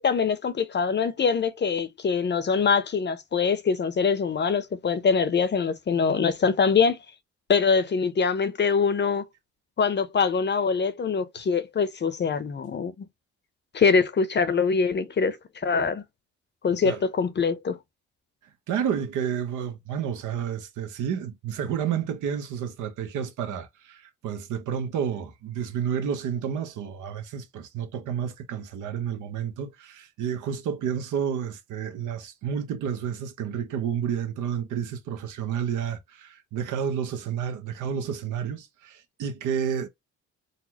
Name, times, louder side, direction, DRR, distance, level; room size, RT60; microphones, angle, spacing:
voice 1, 0.0-7.0 7.5-9.3 9.8-13.1 13.7-15.4 15.6-16.0 16.6-17.8, left 5 dB, 35° left, 0.7 m, -24 dB
voice 2, 18.7-39.9, right 8 dB, 80° right, 1.0 m, -30 dB
4.1 x 2.1 x 2.8 m
cardioid pair, 90°, 30 cm